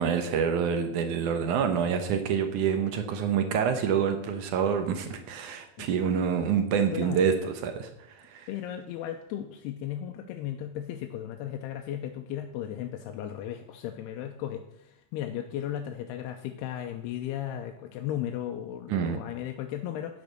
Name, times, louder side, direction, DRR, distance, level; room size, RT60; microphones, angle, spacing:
voice 1, 0.0-8.5 18.9-19.2, right 7 dB, 70° right, 7 dB, 2.0 m, -27 dB
voice 2, 6.9-7.3 8.5-20.2, left 11 dB, 85° left, 4 dB, 2.8 m, -35 dB
10.5 x 7.4 x 6.6 m, 0.82 s
omnidirectional pair, 4.7 m